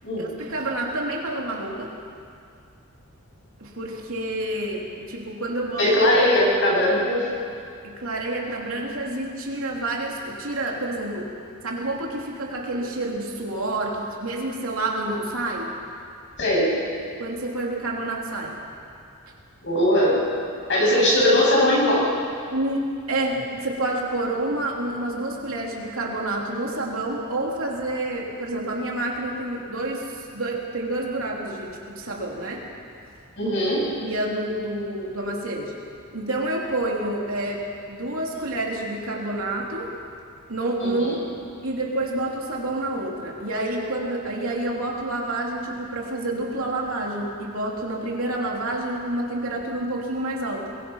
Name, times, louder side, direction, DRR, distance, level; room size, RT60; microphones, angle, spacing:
voice 1, 0.2-1.9 3.6-5.9 7.8-11.3 11.6-15.7 17.2-18.6 22.5-32.6 34.0-35.7 36.1-39.9 40.5-41.2 41.6-50.7, right 1 dB, 65° right, -1 dB, 3.4 m, -28 dB
voice 2, 5.8-7.2 16.4-16.7 19.6-20.2 20.7-22.1 33.4-33.8 40.8-41.1, left 1 dB, 55° left, -4 dB, 7.7 m, -20 dB
22.5 x 22.0 x 5.8 m, 2.3 s
head